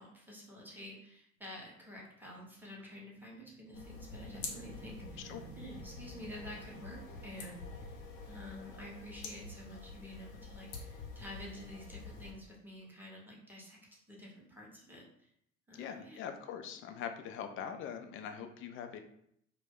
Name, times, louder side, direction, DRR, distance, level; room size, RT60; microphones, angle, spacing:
voice 1, 0.0-8.0 8.3-15.3 15.7-16.2, equal, 5° right, -4 dB, 0.8 m, -49 dB
sound 1, 1.8-12.3, right 3 dB, 75° right, 0.8 m, -57 dB
sound 2, 3.7-12.3, left 4 dB, 70° left, 0.7 m, -47 dB
voice 2, 15.7-19.0, left 8 dB, 35° left, 7 dB, 0.4 m, -42 dB
2.2 x 2.1 x 3.4 m, 0.71 s
hypercardioid pair, 65°, 39 cm